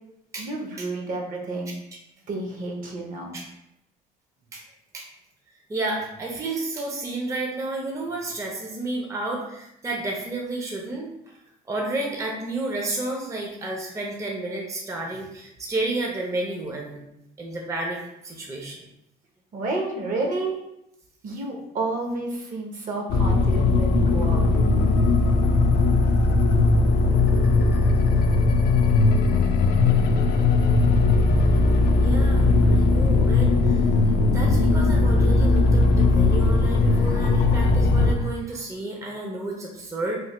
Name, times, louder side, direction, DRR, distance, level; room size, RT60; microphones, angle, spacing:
voice 1, 0.4-1.8 2.3-3.4 19.5-20.6 21.2-24.5, right 2 dB, 55° right, 1 dB, 0.7 m, -30 dB
voice 2, 5.7-11.1 11.7-17.0 17.4-18.8 24.2-24.3 32.0-40.2, right 2 dB, 20° right, -1 dB, 0.5 m, -31 dB
sound 1, 23.1-38.1, left 3 dB, 75° left, 0.4 m, -19 dB
3.2 x 2.1 x 3.0 m, 0.83 s
cardioid pair, 110°, 17 cm